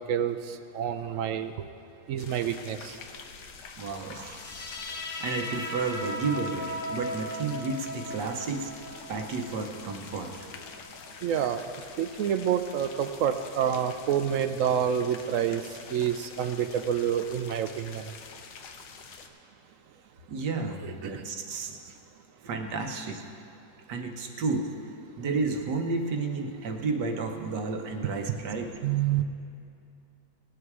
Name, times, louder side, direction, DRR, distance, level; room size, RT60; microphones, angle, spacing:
voice 1, 0.7-1.5 2.1-2.8 11.2-11.6 12.0-15.6 15.9-18.0 20.8-20.9 28.8-29.2, right 9 dB, 65° right, 9 dB, 0.8 m, -27 dB
sound 1, 2.2-19.3, left 5 dB, 80° left, 1.4 m, -47 dB
voice 2, 3.8-4.4 5.2-8.6 9.1-10.3 20.3-21.8 22.4-23.2 23.9-24.7 25.2-28.7, right 4 dB, 85° right, 4 dB, 1.7 m, -31 dB
sound 2, 4.2-11.3, left 1 dB, 35° left, 0.9 m, -38 dB
18.5 x 8.5 x 4.8 m, 2.6 s
omnidirectional pair, 1.8 m